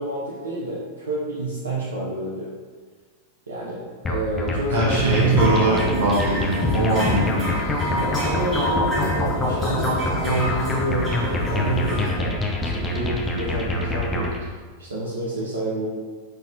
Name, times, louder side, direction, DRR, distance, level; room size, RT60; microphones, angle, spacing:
voice 1, 0.0-2.5 3.5-5.5 7.9-14.3 14.8-15.9, right 3 dB, 75° right, -6 dB, 0.4 m, -28 dB
sound 1, 4.0-14.4, left 2 dB, 15° left, 0.4 m, -26 dB
voice 2, 4.7-7.5, right 1 dB, 55° right, -5 dB, 0.9 m, -22 dB
sound 2, 4.9-12.1, equal, 15° right, 1.5 m, -28 dB
3.2 x 2.6 x 2.4 m, 1.5 s
figure-of-eight pair, 90°, 0 cm